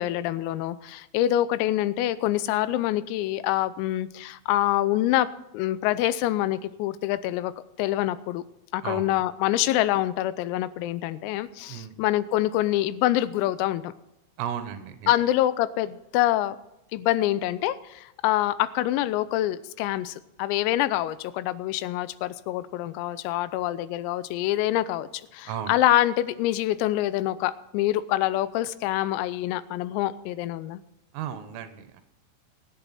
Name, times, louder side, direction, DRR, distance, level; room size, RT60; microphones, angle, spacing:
voice 1, 0.0-5.3 5.5-7.5 7.8-8.4 8.7-13.9 15.1-16.6 16.9-25.1 25.3-30.8, left 14 dB, 85° left, 16 dB, 3.4 m, -26 dB
voice 2, 8.8-9.2 11.7-12.0 14.4-15.1 25.5-25.8 31.1-32.0, right 9 dB, 80° right, 9 dB, 3.7 m, -34 dB
23.5 x 8.9 x 4.3 m, 0.92 s
omnidirectional pair, 6.0 m